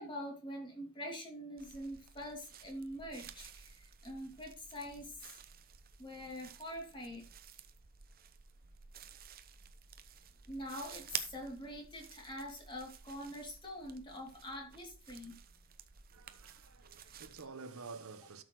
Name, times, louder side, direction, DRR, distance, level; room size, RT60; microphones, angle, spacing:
voice 1, 0.0-5.3 6.0-7.2 10.5-15.4, equal, 20° left, 2.5 m, -45 dB
sound 1, 1.6-17.5, right 9 dB, 40° right, 0.7 m, -51 dB
voice 2, 16.1-18.4, right 4 dB, 80° right, 1.0 m, -50 dB
12.5 x 6.6 x 3.1 m
head